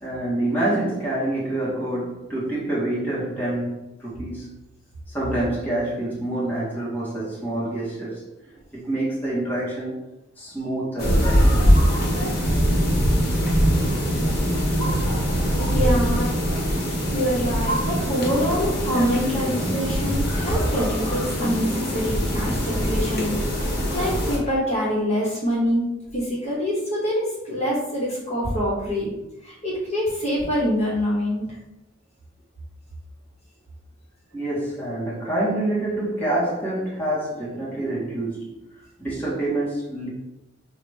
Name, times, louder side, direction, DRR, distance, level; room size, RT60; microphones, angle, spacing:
voice 1, 0.0-4.5 5.1-10.0 10.4-11.6 34.3-40.1, right 1 dB, 10° left, -8 dB, 1.5 m, -27 dB
sound 1, 11.0-24.4, equal, 50° left, 1.2 m, -22 dB
voice 2, 15.7-16.3 17.1-23.3 23.6-25.8 26.1-29.1 29.4-31.5, equal, 35° left, -6 dB, 1.4 m, -25 dB
5.9 x 2.5 x 3.4 m, 0.96 s
head